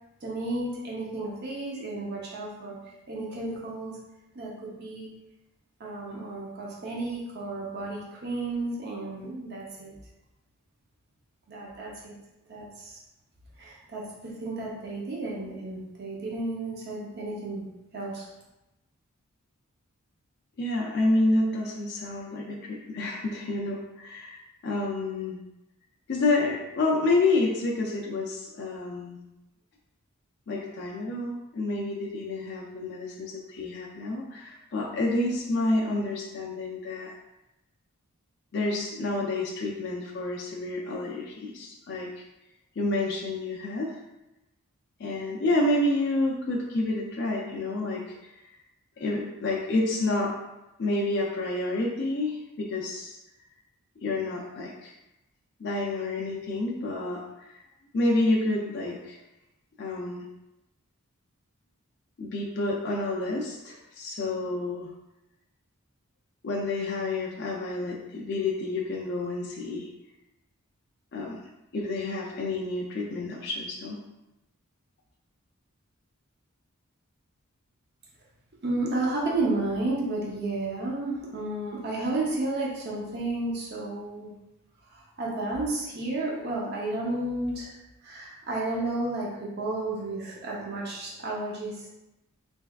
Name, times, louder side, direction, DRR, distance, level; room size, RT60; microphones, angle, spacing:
voice 1, 0.2-2.8 3.1-3.9 4.3-5.1 5.8-9.9 11.5-12.1 12.5-13.0 13.6-14.1 14.4-17.7 17.9-18.2 78.6-84.3 84.9-87.7 88.0-91.9, right 2 dB, 45° right, -4 dB, 0.6 m, -32 dB
voice 2, 20.6-25.4 26.1-29.2 30.5-37.1 38.5-42.2 42.8-43.9 45.0-48.4 49.0-50.3 50.8-53.2 54.0-54.9 55.6-57.6 57.9-59.2 59.8-60.3 62.2-64.9 66.4-69.9 71.1-71.4 71.7-74.0, left 2 dB, 50° left, -1 dB, 0.4 m, -29 dB
3.5 x 3.2 x 2.3 m, 0.95 s
head